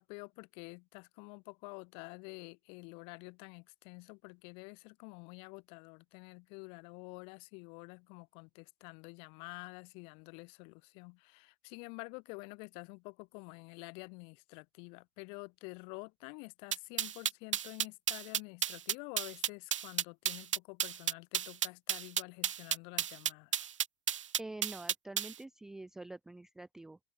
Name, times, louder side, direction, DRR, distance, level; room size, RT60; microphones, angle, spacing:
voice 1, 0.0-23.5, left 34 dB, 30° left, 2.2 m, -49 dB
sound 1, 16.7-25.3, right 9 dB, 55° right, 0.4 m, -32 dB
voice 2, 24.4-27.0, right 2 dB, ahead, 0.6 m, -46 dB
open air
figure-of-eight pair, 115°, 19 cm